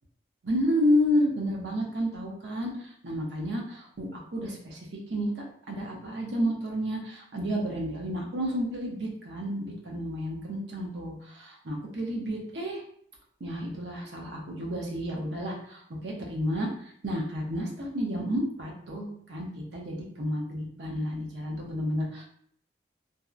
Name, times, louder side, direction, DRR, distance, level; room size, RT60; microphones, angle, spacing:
voice 1, 0.4-4.8 5.1-12.8 13.4-16.7 17.0-22.2, equal, 80° right, -1 dB, 0.7 m, -31 dB
2.7 x 2.0 x 2.4 m, 0.65 s
head